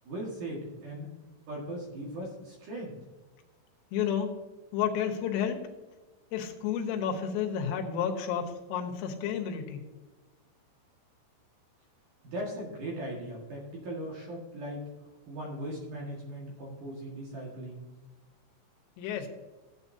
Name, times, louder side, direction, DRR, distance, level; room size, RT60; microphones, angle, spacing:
voice 1, 0.0-1.1 1.5-3.0 12.2-14.9 15.3-17.9, right 1 dB, 55° right, -2 dB, 2.6 m, -38 dB
voice 2, 3.9-4.3 4.7-5.6 6.3-9.9 19.0-19.3, left 8 dB, 90° left, 4 dB, 3.8 m, -31 dB
15.5 x 8.5 x 2.7 m, 1.2 s
omnidirectional pair, 5.7 m